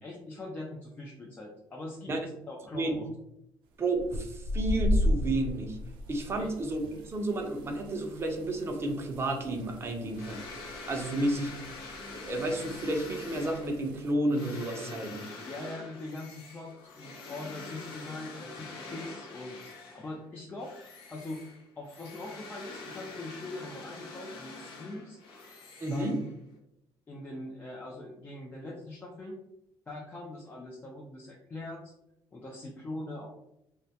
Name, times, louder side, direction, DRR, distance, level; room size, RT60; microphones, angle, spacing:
voice 1, 0.0-3.0 6.4-6.5 15.4-20.7 21.1-25.2 25.9-26.3 27.1-29.4 29.9-31.9 32.3-33.3, left 2 dB, 20° left, -2 dB, 0.4 m, -42 dB
voice 2, 3.8-5.8 6.1-10.4 10.9-11.5 12.1-15.2 25.8-26.2, right 1 dB, 30° right, 2 dB, 0.5 m, -31 dB
sound 1, 3.9-14.1, left 1 dB, 80° right, 0.4 m, -35 dB
sound 2, 10.1-20.2 20.6-26.6, left 3 dB, 75° left, 0.6 m, -45 dB
2.1 x 2.1 x 2.7 m, 0.82 s
cardioid pair, 105°, 8 cm